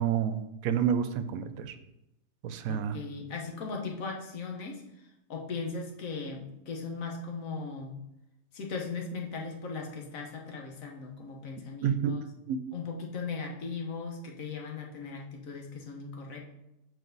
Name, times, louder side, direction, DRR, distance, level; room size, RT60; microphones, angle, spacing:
voice 1, 0.0-1.7 2.4-3.0 11.8-12.1 12.5-12.6, right 8 dB, 85° right, 10 dB, 1.0 m, -29 dB
voice 2, 2.7-4.8 5.3-8.0 8.5-12.2 12.7-16.4, left 4 dB, 75° left, 1 dB, 1.5 m, -38 dB
6.5 x 4.6 x 3.9 m, 0.89 s
omnidirectional pair, 1.4 m